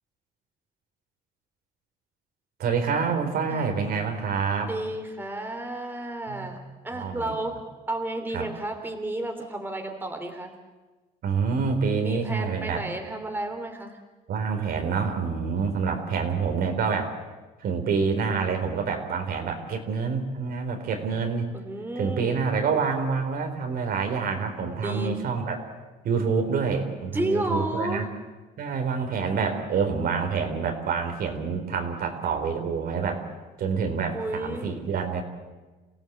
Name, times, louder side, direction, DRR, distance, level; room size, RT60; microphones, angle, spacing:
voice 1, 2.6-4.7 6.3-6.6 6.9-7.3 8.3-8.5 11.2-12.8 14.3-17.1 17.6-21.5 22.0-25.6 26.0-28.1 28.6-33.3 33.6-35.2, right 5 dB, 65° right, 4 dB, 4.1 m, -27 dB
voice 2, 4.6-6.6 6.8-7.6 7.9-10.5 12.0-14.0 21.5-22.4 24.8-25.2 27.1-28.0 34.1-34.7, right 1 dB, 10° right, 4 dB, 3.2 m, -32 dB
28.5 x 16.5 x 8.1 m, 1.2 s
cardioid pair, 110°, 17 cm